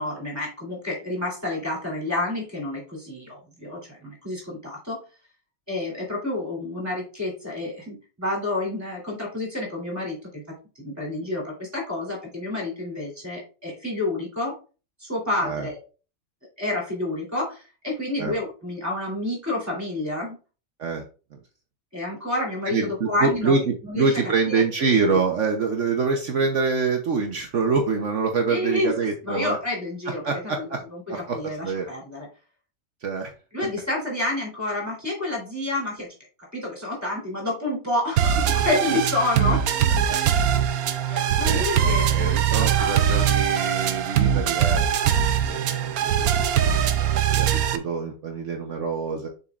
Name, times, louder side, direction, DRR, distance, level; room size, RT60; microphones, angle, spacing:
voice 1, 0.0-5.0 5.7-10.4 10.7-14.6 15.0-15.8 16.6-20.4 21.9-24.1 24.4-24.6 25.1-25.2 28.5-32.3 33.5-36.1 36.5-39.6 41.1-42.9, left 2 dB, 10° right, -2 dB, 3.3 m, -29 dB
voice 2, 22.7-29.6 30.2-30.8 31.1-31.9 33.0-33.3 40.1-40.2 41.5-49.3, right 4 dB, 60° right, 3 dB, 1.2 m, -26 dB
sound 1, 38.2-47.8, right 9 dB, 90° right, 1.2 m, -22 dB
7.0 x 5.6 x 2.5 m, 0.35 s
omnidirectional pair, 1.5 m